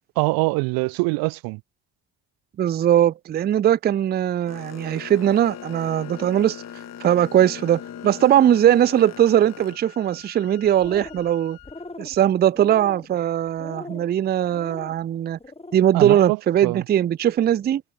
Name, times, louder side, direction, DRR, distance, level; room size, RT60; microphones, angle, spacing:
voice 1, 0.2-1.6 15.9-16.4 16.6-16.8, right 28 dB, 85° right, 0.6 m, -23 dB
voice 2, 2.6-6.6 7.0-11.6 12.0-15.4 15.7-17.8, right 11 dB, 30° right, 0.4 m, -20 dB
Boat Water vehicle, 4.5-9.8, left 8 dB, 45° left, 2.1 m, -39 dB
Wind instrument woodwind instrument, 5.3-12.0, left 22 dB, 85° left, 5.6 m, -48 dB
sound 1, 10.6-11.3 11.6-12.1 12.5-13.1 13.6-14.1 14.5-14.9 15.4-15.8, left 2 dB, 15° left, 5.7 m, -39 dB
supercardioid pair, 65°, 35 cm